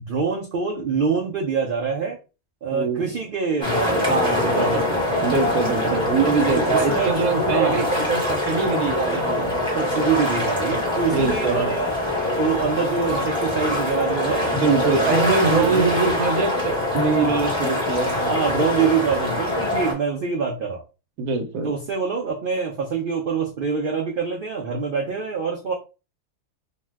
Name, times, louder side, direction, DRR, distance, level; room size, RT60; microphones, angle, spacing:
voice 1, 0.0-2.2 2.6-5.1 5.8-6.0 6.5-7.2 7.5-7.9 9.7-12.0 12.3-16.2 17.3-17.6 18.2-20.8 21.6-25.7, right 5 dB, 60° right, -1 dB, 0.5 m, -25 dB
voice 2, 2.7-3.1 4.1-4.8 5.2-9.6 11.1-11.7 14.5-18.3 21.2-21.7, right 4 dB, 90° right, 5 dB, 1.1 m, -23 dB
sound 1, 3.6-19.9, left 1 dB, 5° left, 0.9 m, -24 dB
2.6 x 2.2 x 3.2 m, 0.32 s
omnidirectional pair, 1.4 m